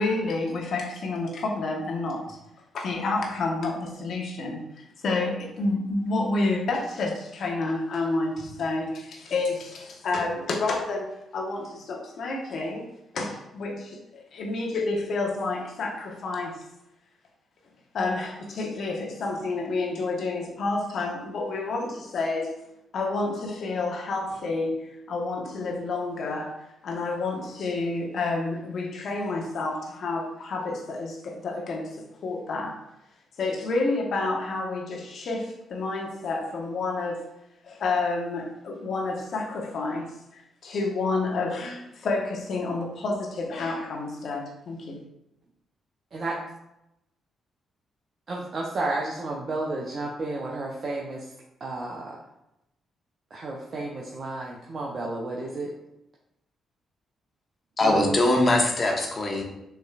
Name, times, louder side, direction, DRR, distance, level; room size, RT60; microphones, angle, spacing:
voice 1, 0.0-2.4 2.7-12.8 13.1-16.6 17.9-22.5 22.9-26.5 26.8-32.8 33.4-37.3 37.6-45.0, left 3 dB, 60° left, 0 dB, 1.0 m, -29 dB
voice 2, 48.3-51.3 51.6-52.2 53.3-55.7 57.8-58.2, right 2 dB, 50° right, -3 dB, 0.7 m, -32 dB
voice 3, 57.8-59.4, left 1 dB, 40° left, 1 dB, 1.1 m, -22 dB
6.6 x 3.1 x 2.4 m, 0.87 s
hypercardioid pair, 45°, 0 cm